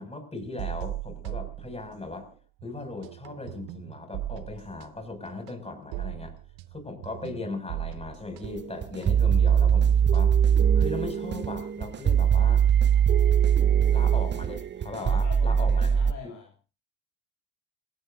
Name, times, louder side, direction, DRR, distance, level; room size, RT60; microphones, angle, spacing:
voice 1, 0.0-2.3 2.6-6.3 6.7-10.3 10.7-12.6 13.9-16.3, left 2 dB, 15° left, 4 dB, 6.5 m, -38 dB
sound 1, 0.6-2.3 2.6-11.3, right 15 dB, 55° right, 1.1 m, -39 dB
sound 2, 8.4-16.1, right 8 dB, 25° right, 0.8 m, -22 dB
voice 2, 14.9-16.5, left 6 dB, 45° left, 0 dB, 3.0 m, -44 dB
28.0 x 17.0 x 2.7 m, 0.35 s
hypercardioid pair, 65°, 44 cm